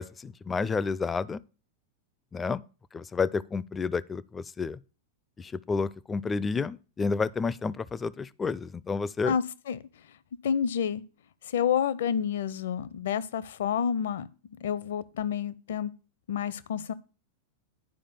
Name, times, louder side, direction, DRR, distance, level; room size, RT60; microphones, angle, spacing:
voice 1, 0.0-1.4 2.3-2.6 2.9-4.8 5.4-9.3, left 4 dB, 15° left, 0.4 m, -30 dB
voice 2, 9.2-9.8 10.4-11.0 11.4-14.3 14.6-15.9 16.3-16.9, left 8 dB, 60° left, 0.7 m, -29 dB
10.0 x 5.0 x 7.0 m
figure-of-eight pair, 90°, 0 cm